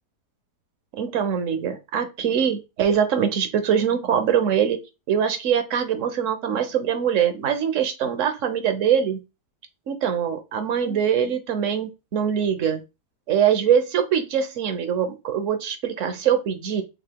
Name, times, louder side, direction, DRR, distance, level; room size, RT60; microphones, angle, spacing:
voice 1, 1.0-4.8 5.1-9.2 9.9-12.8 13.3-16.8, right 8 dB, 55° right, 8 dB, 1.1 m, -23 dB
6.5 x 3.3 x 2.2 m, 0.26 s
omnidirectional pair, 1.7 m